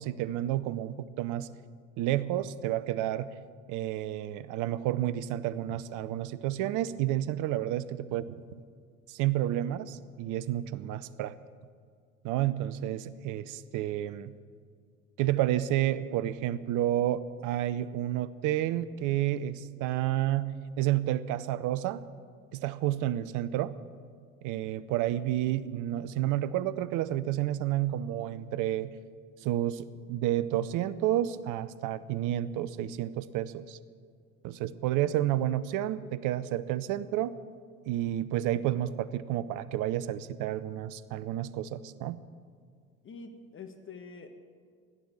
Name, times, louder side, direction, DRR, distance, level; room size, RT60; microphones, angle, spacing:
voice 1, 0.0-1.5 2.0-3.3 3.7-8.3 9.1-11.3 12.2-14.3 15.2-22.0 22.5-23.7 24.4-28.9 29.4-33.8 34.4-37.4 37.9-42.2, right 13 dB, 50° right, 16 dB, 0.8 m, -30 dB
voice 2, 43.0-44.3, left 4 dB, 30° left, 7 dB, 1.5 m, -45 dB
16.0 x 11.5 x 7.0 m, 2.1 s
hypercardioid pair, 70°, 40 cm